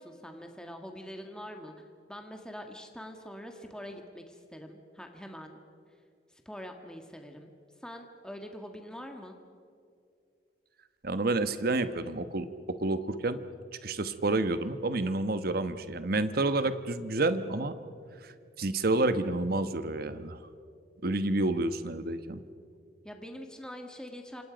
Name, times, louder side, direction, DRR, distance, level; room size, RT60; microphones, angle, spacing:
voice 1, 0.0-1.7 2.1-5.6 6.3-7.5 7.8-9.4 23.0-24.4, equal, 5° left, 4 dB, 1.7 m, -44 dB
voice 2, 11.0-13.4 13.8-17.7 18.2-20.4 21.0-22.4, right 2 dB, 55° right, 11 dB, 1.1 m, -29 dB
28.0 x 26.5 x 5.2 m, 2.4 s
head